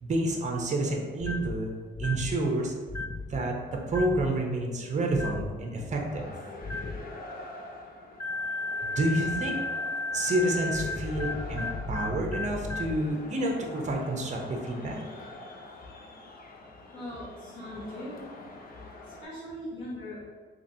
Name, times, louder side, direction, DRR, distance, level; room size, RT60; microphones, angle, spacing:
voice 1, 0.0-1.7 2.0-2.7 3.3-6.3 8.8-9.6 10.1-15.0, right 1 dB, 35° right, 1 dB, 0.7 m, -29 dB
sound 1, 1.2-1.6 1.9-2.3 2.9-3.2 3.9-4.3 5.1-5.5 6.6-7.0 8.2-13.0, left 3 dB, 15° left, 0.3 m, -34 dB
sound 2, 5.9-19.2, left 2 dB, 45° left, 0.6 m, -45 dB
voice 2, 16.9-18.2 19.2-20.2, left 1 dB, 80° left, -7 dB, 1.4 m, -40 dB
3.9 x 3.0 x 2.7 m, 1.5 s
cardioid pair, 90°, 20 cm